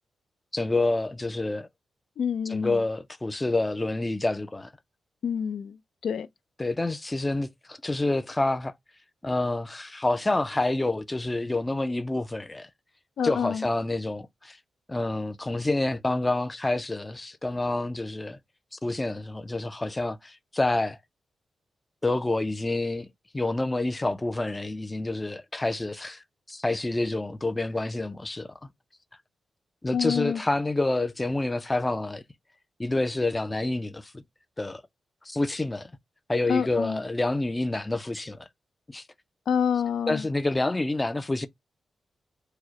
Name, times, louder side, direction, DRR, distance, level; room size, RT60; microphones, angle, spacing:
voice 1, 0.5-1.7 2.5-4.7 6.6-8.7 9.2-12.7 13.2-14.6 14.9-18.4 18.7-21.0 22.0-28.6 29.8-32.2 32.8-34.2 34.6-34.8 35.2-35.9 36.3-38.5 38.9-39.0 40.1-41.5, left 2 dB, 15° left, 0.4 m, -28 dB
voice 2, 2.2-2.8 5.2-5.8 6.0-6.3 13.2-13.6 29.9-30.4 36.5-37.0 39.5-40.2, left 7 dB, 80° left, 0.4 m, -27 dB
4.6 x 2.0 x 2.9 m
wide cardioid pair, 115°, 0 cm